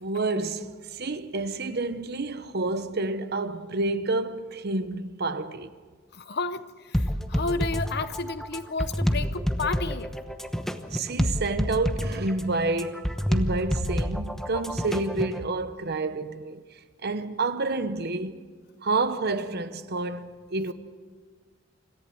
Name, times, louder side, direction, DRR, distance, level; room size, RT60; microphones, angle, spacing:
voice 1, 0.0-5.7 10.9-13.0 13.3-16.6 17.0-18.5 18.8-20.7, right 2 dB, 50° right, 1.0 m, -29 dB
voice 2, 6.1-10.1, left 3 dB, 50° left, 0.9 m, -32 dB
sound 1, 6.9-15.4, equal, ahead, 1.0 m, -28 dB
26.0 x 14.5 x 7.8 m
head